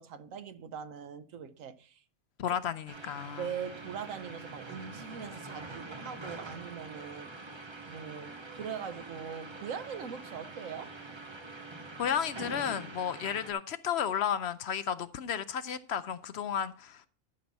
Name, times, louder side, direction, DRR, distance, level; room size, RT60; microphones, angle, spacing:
voice 1, 0.0-2.0 3.4-7.5 7.9-10.9, right 7 dB, 85° right, 1.2 m, -41 dB
voice 2, 2.4-3.5 12.0-17.1, left 8 dB, 65° left, 0.8 m, -33 dB
sound 1, 2.9-13.5, right 3 dB, 25° right, 1.0 m, -45 dB
12.0 x 6.0 x 4.0 m
omnidirectional pair, 1.3 m